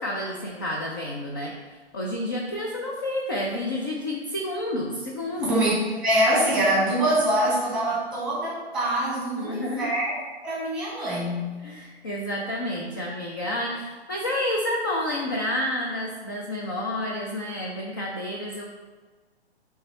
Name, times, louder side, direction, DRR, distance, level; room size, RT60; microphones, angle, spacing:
voice 1, 0.0-1.5 1.9-5.5 9.4-9.8 11.6-18.6, left 1 dB, 20° left, -2 dB, 0.4 m, -29 dB
voice 2, 5.4-10.1 10.4-11.6, right 1 dB, ahead, -6 dB, 1.9 m, -24 dB
7.8 x 3.4 x 4.1 m, 1.3 s
figure-of-eight pair, 125°, 33 cm